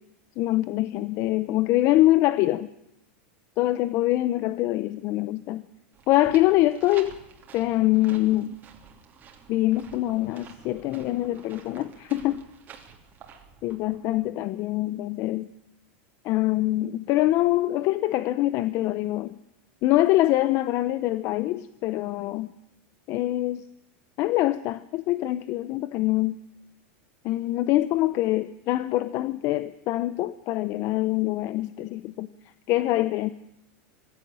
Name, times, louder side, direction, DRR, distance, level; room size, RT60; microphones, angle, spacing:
voice 1, 0.4-2.7 3.6-5.6 6.1-7.1 7.5-8.6 9.5-12.4 13.6-15.5 16.2-19.4 19.8-22.5 23.1-23.6 24.2-26.4 27.2-33.3, left 16 dB, 45° left, 15 dB, 0.7 m, -24 dB
sound 1, 5.9-14.3, right 7 dB, 25° right, 3.1 m, -50 dB
21.5 x 15.5 x 8.9 m, 0.82 s
supercardioid pair, 145°, 7 cm